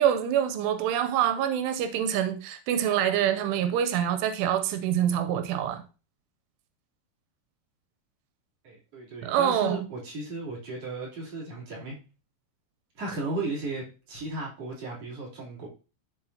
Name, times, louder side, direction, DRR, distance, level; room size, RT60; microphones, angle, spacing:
voice 1, 0.0-5.8 9.2-9.8, right 10 dB, 90° right, 2.8 m, -25 dB
voice 2, 8.6-12.0 13.0-15.7, right 2 dB, 40° right, 3.9 m, -35 dB
12.5 x 4.3 x 2.8 m
omnidirectional pair, 4.8 m